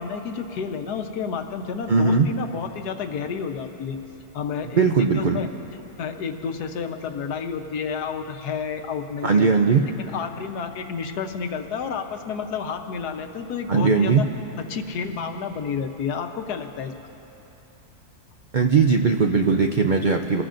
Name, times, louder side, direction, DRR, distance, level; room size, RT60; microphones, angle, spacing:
voice 1, 0.0-4.0 4.3-5.5 6.0-9.5 10.0-14.3 14.6-16.9, left 6 dB, 85° left, 6 dB, 1.4 m, -30 dB
voice 2, 1.9-2.3 4.8-5.4 9.2-9.8 13.7-14.2 18.5-20.4, right 5 dB, 75° right, 4 dB, 0.4 m, -19 dB
26.5 x 18.5 x 2.6 m, 2.9 s
omnidirectional pair, 1.7 m